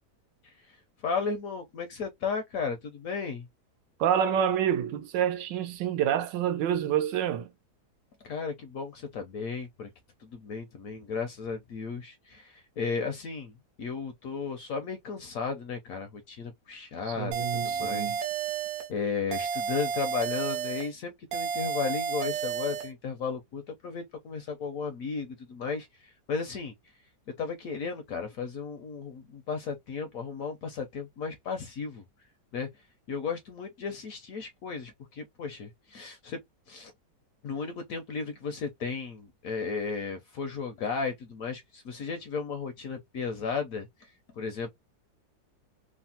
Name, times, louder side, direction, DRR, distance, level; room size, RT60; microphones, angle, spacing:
voice 1, 0.4-0.8 1.0-3.5 8.2-9.9 10.2-18.1 18.9-26.7 27.4-32.0 32.5-32.7 33.1-36.4 36.7-36.9 37.4-44.1 44.4-44.7, left 5 dB, 70° left, 0.8 m, -34 dB
voice 2, 4.0-7.5 17.1-18.2, right 9 dB, 85° right, 1.3 m, -28 dB
sound 1, 17.3-18.9 19.3-20.9 21.3-22.9, right 7 dB, 60° right, 0.9 m, -31 dB
3.3 x 2.1 x 2.6 m
omnidirectional pair, 1.9 m